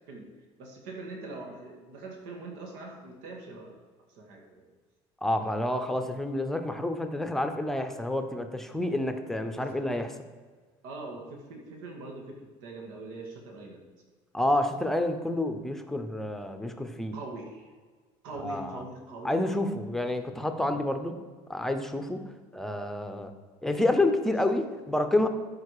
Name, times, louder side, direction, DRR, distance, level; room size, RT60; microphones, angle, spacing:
voice 1, 0.6-3.8 4.1-4.7 9.5-9.8 10.8-13.8 17.1-17.7 18.2-19.7, right 2 dB, 90° right, 1 dB, 2.0 m, -42 dB
voice 2, 5.2-10.1 14.3-17.2 18.4-18.8 19.2-21.1 21.5-22.2 22.5-23.3 23.6-25.3, left 1 dB, 5° left, 7 dB, 0.7 m, -29 dB
13.0 x 5.1 x 4.9 m, 1.5 s
cardioid pair, 150°, 12 cm